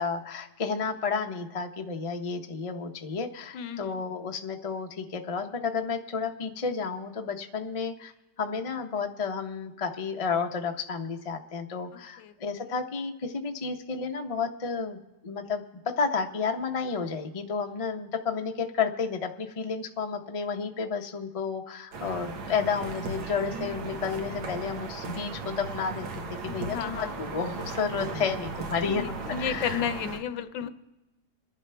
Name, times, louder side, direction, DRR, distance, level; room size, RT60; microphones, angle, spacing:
voice 1, 0.0-8.1 8.4-15.6 16.0-29.8, left 5 dB, 40° left, 4 dB, 0.4 m, -31 dB
voice 2, 3.5-4.0 12.2-12.3 26.4-27.2 28.8-30.7, left 8 dB, 75° left, 11 dB, 1.4 m, -33 dB
sound 1, 21.9-30.2, right 3 dB, 85° right, 2.1 m, -37 dB
27.0 x 11.0 x 3.4 m, 1.1 s
omnidirectional pair, 2.1 m